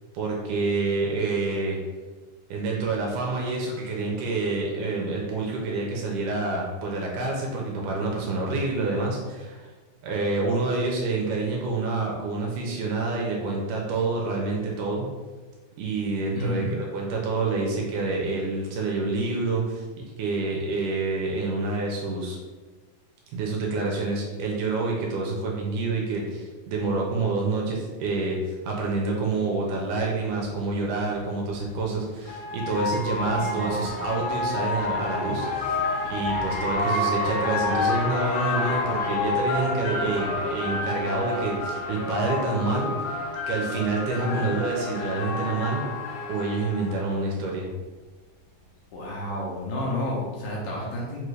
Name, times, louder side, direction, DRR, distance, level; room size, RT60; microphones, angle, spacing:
voice 1, 0.1-1.8 2.5-9.7 10.0-15.1 15.8-22.4 23.3-35.8 36.1-42.9 43.5-45.8 46.3-47.7, right 3 dB, 80° right, -1 dB, 2.0 m, -27 dB
voice 2, 16.3-16.7 33.1-33.9 44.2-44.5 48.9-51.2, left 1 dB, 75° left, -5 dB, 2.0 m, -31 dB
sound 1, 31.6-47.2, left 2 dB, 90° left, 2.4 m, -29 dB
5.3 x 2.5 x 3.2 m, 1.3 s
omnidirectional pair, 3.9 m